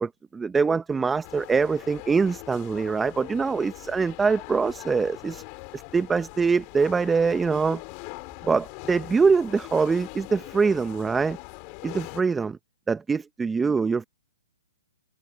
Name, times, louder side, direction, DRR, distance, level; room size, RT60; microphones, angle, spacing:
voice 1, 0.0-5.4 5.7-7.8 8.5-11.4 11.8-12.6 12.9-14.0, right 5 dB, 10° right, 0.8 m, -24 dB
sound 1, 1.2-12.2, left 32 dB, 35° left, 3.8 m, -42 dB
hypercardioid pair, 135°, 0 cm